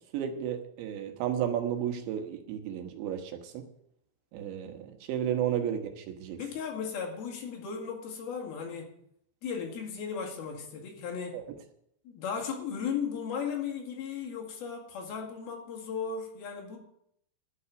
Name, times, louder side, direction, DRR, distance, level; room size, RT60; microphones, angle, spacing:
voice 1, 0.1-3.7 4.3-6.4 11.3-11.4, right 9 dB, 90° right, 5 dB, 3.5 m, -33 dB
voice 2, 6.4-8.9 9.4-11.4 12.1-16.8, left 6 dB, 65° left, 0 dB, 3.7 m, -36 dB
12.0 x 5.8 x 9.1 m, 0.72 s
omnidirectional pair, 5.0 m